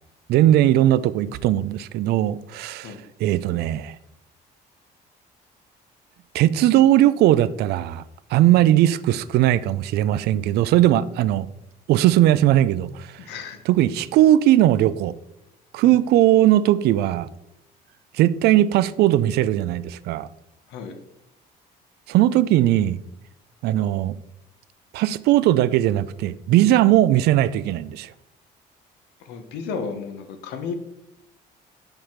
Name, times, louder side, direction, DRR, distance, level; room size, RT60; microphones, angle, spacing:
voice 1, 0.3-2.9 3.2-3.9 6.3-8.0 8.3-11.5 11.9-13.1 13.7-15.1 15.7-17.3 18.1-20.3 22.1-23.0 23.6-24.1 24.9-28.1, right 13 dB, 75° right, 0.4 m, -18 dB
voice 2, 13.2-13.6 15.8-16.0 20.7-21.0 29.2-30.7, left 5 dB, 85° left, 1.0 m, -33 dB
5.6 x 5.2 x 4.5 m
cardioid pair, 110°, 17 cm